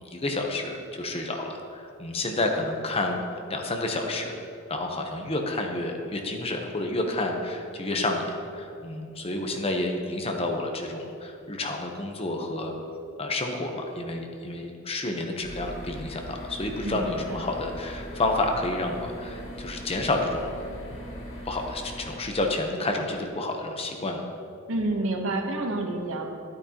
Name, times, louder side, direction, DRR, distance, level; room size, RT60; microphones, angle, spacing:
voice 1, 0.1-3.2 3.5-4.3 4.7-8.3 8.5-12.7 13.2-20.5 20.9-21.0 21.5-24.2, left 2 dB, 30° left, 3 dB, 0.9 m, -30 dB
sound 1, 15.4-22.2, equal, 85° left, 1.9 m, -40 dB
voice 2, 16.8-17.4 24.7-26.3, right 2 dB, 75° right, 3 dB, 1.0 m, -29 dB
11.5 x 8.8 x 2.9 m, 2.6 s
head